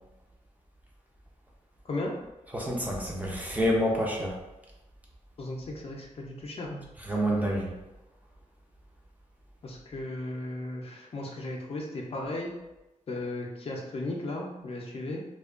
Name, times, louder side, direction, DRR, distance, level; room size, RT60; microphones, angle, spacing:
voice 1, 2.5-4.3 7.0-7.7, equal, 10° right, -3 dB, 0.4 m, -28 dB
voice 2, 5.4-6.8 9.6-12.5 13.1-15.2, left 2 dB, 50° left, -1 dB, 0.4 m, -35 dB
2.6 x 2.1 x 2.4 m, 1.0 s
wide cardioid pair, 170°, 13 cm